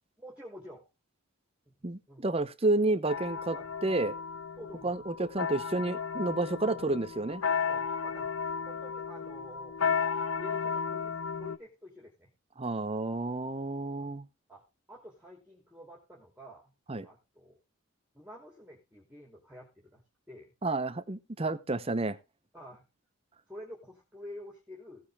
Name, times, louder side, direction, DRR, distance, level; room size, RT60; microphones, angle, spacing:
voice 1, 0.2-0.9 1.7-2.3 3.5-3.7 4.6-5.0 6.6-6.8 7.7-8.3 8.6-9.8 10.4-12.3 14.0-14.1 14.5-16.7 17.0-17.6 18.1-20.0 20.3-20.5 22.5-22.8 23.5-25.1, equal, 5° right, 3.0 m, -49 dB
voice 2, 1.8-3.6 3.8-4.1 4.8-7.4 12.6-14.3 16.9-17.1 20.6-22.2, right 2 dB, 25° right, 0.7 m, -30 dB
sound 1, 3.1-11.6, left 6 dB, 85° left, 0.8 m, -34 dB
17.0 x 6.7 x 3.5 m
head